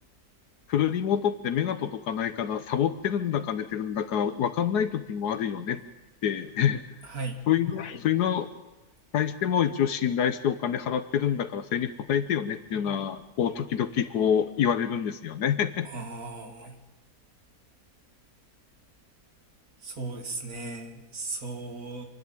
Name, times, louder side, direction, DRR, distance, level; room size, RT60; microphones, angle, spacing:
voice 1, 0.7-5.8 6.2-6.8 7.5-8.5 9.1-15.9, left 9 dB, 80° left, 11 dB, 1.4 m, -27 dB
voice 2, 7.0-7.4 15.8-16.8 19.8-22.0, right 3 dB, 65° right, 4 dB, 2.8 m, -36 dB
27.5 x 11.0 x 8.9 m, 1.1 s
omnidirectional pair, 1.7 m